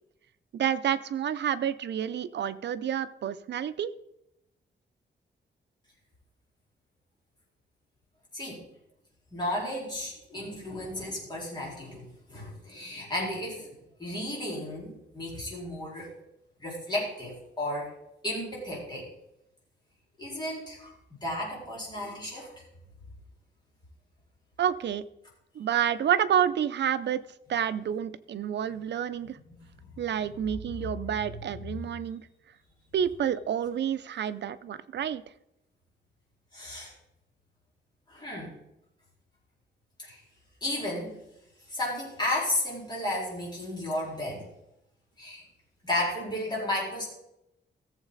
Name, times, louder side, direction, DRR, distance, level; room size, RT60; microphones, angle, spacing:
voice 1, 0.5-3.9 24.6-25.0 25.6-27.2 27.5-29.4 30.0-32.2 32.9-35.2, right 9 dB, 65° right, 11 dB, 0.6 m, -29 dB
voice 2, 9.3-16.1 16.6-17.9 18.2-19.1 20.2-22.5 29.2-29.6 29.9-30.3 30.7-30.9 31.3-31.9 36.5-36.9 38.1-38.6 40.0-40.2 40.6-41.2 41.7-44.5 45.2-45.4 45.8-47.1, left 1 dB, 20° left, -5 dB, 4.4 m, -34 dB
15.0 x 7.3 x 4.0 m, 0.84 s
wide cardioid pair, 155°, 19 cm